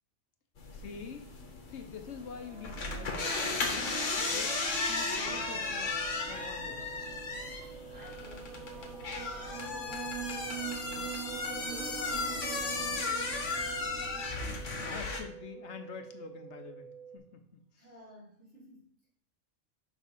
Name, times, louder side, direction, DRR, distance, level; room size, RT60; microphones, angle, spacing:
sound 1, 0.6-15.2, left 3 dB, 90° left, 1.4 m, -35 dB
voice 1, 0.7-1.3 1.7-3.6 4.2-4.5 4.9-6.0 6.3-6.9 14.3-17.4 17.7-17.8, left 6 dB, 70° left, 6 dB, 1.0 m, -46 dB
sound 2, 1.6-15.7, right 9 dB, 75° right, 0.9 m, -45 dB
sound 3, 5.7-17.2, right 7 dB, 20° left, 0.7 m, -49 dB
voice 2, 7.4-13.4 17.8-19.1, equal, 55° right, -7 dB, 3.4 m, -53 dB
6.3 x 4.0 x 5.4 m, 0.66 s
omnidirectional pair, 1.2 m